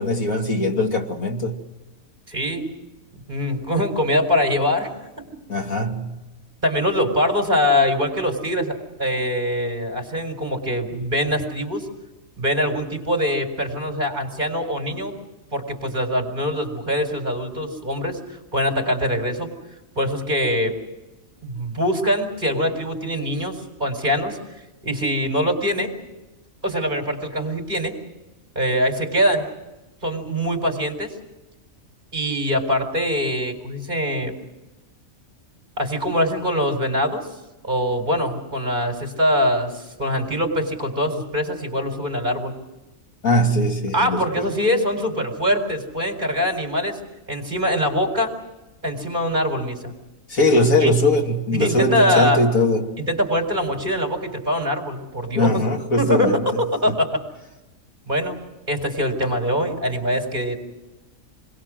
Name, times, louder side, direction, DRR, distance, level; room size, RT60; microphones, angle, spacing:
voice 1, 0.0-1.6 5.5-6.1 43.2-44.5 50.3-52.9 55.3-56.4, left 1 dB, 80° left, 3.1 m, -20 dB
voice 2, 2.3-2.7 3.1-4.9 5.2-5.3 6.6-11.9 12.4-15.1 15.5-18.2 18.5-19.5 20.0-20.8 21.4-24.4 24.8-25.9 26.6-28.0 28.6-29.5 30.0-31.1 32.1-34.3 35.8-37.3 37.6-42.5 43.9-47.0 47.3-48.3 48.8-49.9 50.8-50.9 51.6-52.4 53.0-55.6 56.0-56.4 56.8-57.2 58.1-58.4 58.7-60.6, equal, 35° right, 4.3 m, -23 dB
28.5 x 21.5 x 6.3 m
omnidirectional pair, 1.4 m